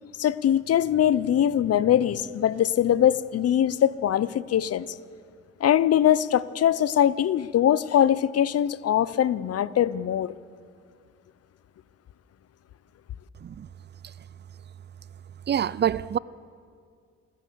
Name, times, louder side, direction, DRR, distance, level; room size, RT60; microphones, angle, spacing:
voice 1, 0.2-4.9 5.6-10.3, left 10 dB, 55° left, 0.8 m, -22 dB
voice 2, 15.5-16.2, right 9 dB, 35° right, 0.5 m, -25 dB
27.5 x 15.5 x 6.9 m
cardioid pair, 90°, 30 cm